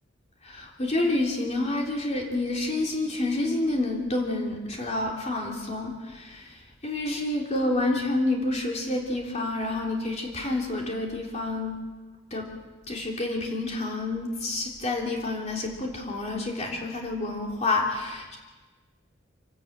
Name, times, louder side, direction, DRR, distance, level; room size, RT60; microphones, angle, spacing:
voice 1, 0.4-11.8 12.3-12.5 12.9-18.4, left 2 dB, 35° left, -1 dB, 3.3 m, -28 dB
26.0 x 13.0 x 8.7 m, 1.2 s
head